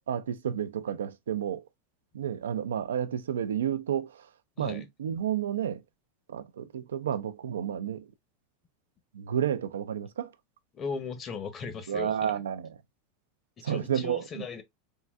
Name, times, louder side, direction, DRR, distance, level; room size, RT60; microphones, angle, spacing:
voice 1, 0.1-1.7 2.1-4.3 4.6-5.8 6.3-8.1 9.1-10.3 11.9-12.8 13.6-14.5, right 9 dB, 90° right, 0.3 m, -31 dB
voice 2, 10.7-12.3 13.6-14.6, left 5 dB, 35° left, 0.9 m, -37 dB
3.7 x 2.3 x 2.3 m
hypercardioid pair, 110°, 0 cm